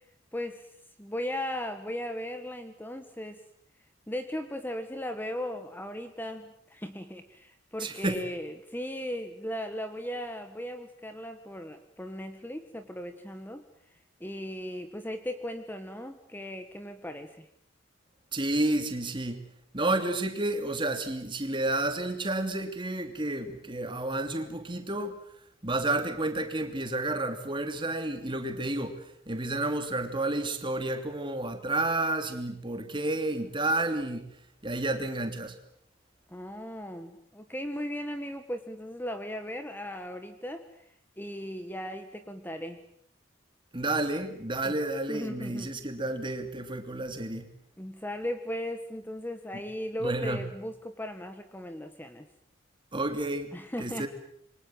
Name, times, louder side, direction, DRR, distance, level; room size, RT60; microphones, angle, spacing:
voice 1, 0.3-0.6 1.0-3.4 4.1-13.6 14.2-17.5 36.3-40.6 41.2-42.8 44.6-44.7 45.1-45.7 47.8-52.3 53.5-54.1, equal, 10° left, 8 dB, 1.5 m, -37 dB
voice 2, 7.8-8.2 18.3-19.4 19.7-25.2 25.6-34.3 34.6-35.6 43.7-47.5 50.0-50.4 52.9-54.1, right 2 dB, 25° right, 7 dB, 2.9 m, -31 dB
27.5 x 24.5 x 7.7 m, 0.68 s
head